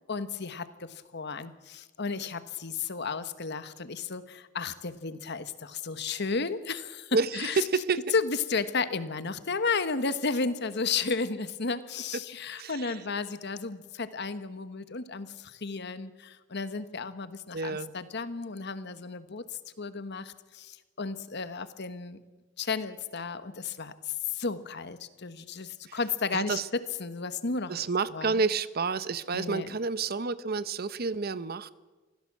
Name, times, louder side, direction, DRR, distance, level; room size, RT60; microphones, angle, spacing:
voice 1, 0.1-7.6 8.1-22.2 22.6-27.7 28.1-28.4 29.3-29.8, left 4 dB, 55° left, 12 dB, 1.2 m, -33 dB
voice 2, 7.6-8.0 12.6-13.0 17.5-17.9 25.9-26.0 26.3-26.7 27.7-31.7, right 4 dB, 50° right, 15 dB, 0.8 m, -30 dB
24.5 x 16.0 x 7.4 m, 1.2 s
head